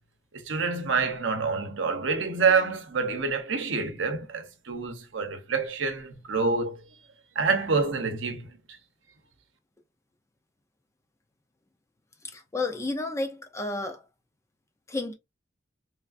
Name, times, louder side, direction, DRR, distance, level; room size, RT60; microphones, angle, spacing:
voice 1, 0.3-6.8 7.3-8.6, right 4 dB, 70° right, 0.8 m, -27 dB
voice 2, 12.2-14.1 14.9-15.1, left 2 dB, 15° left, 0.4 m, -31 dB
3.3 x 2.4 x 2.4 m
head